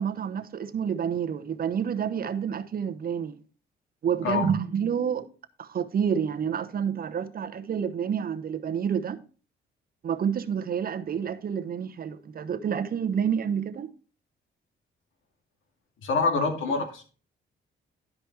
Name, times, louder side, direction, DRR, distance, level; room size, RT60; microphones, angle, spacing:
voice 1, 0.0-3.4 4.0-5.3 5.6-9.2 10.0-13.9, right 7 dB, 50° right, 0.9 m, -29 dB
voice 2, 16.0-17.0, left 4 dB, 80° left, 2.4 m, -26 dB
12.0 x 5.1 x 4.6 m
cardioid pair, 90°, 20 cm